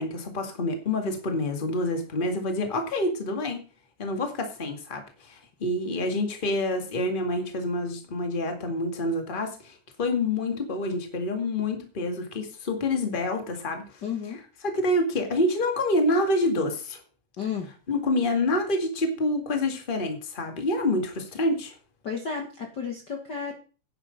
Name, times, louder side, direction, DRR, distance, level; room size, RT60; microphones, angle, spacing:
voice 1, 0.0-3.6 4.0-14.0 14.6-17.0 17.9-21.7, left 1 dB, 20° left, 5 dB, 1.7 m, -27 dB
voice 2, 14.0-14.4 17.4-17.7 22.0-23.5, left 6 dB, 45° left, 3 dB, 1.7 m, -32 dB
9.9 x 9.4 x 5.1 m, 0.35 s
omnidirectional pair, 3.4 m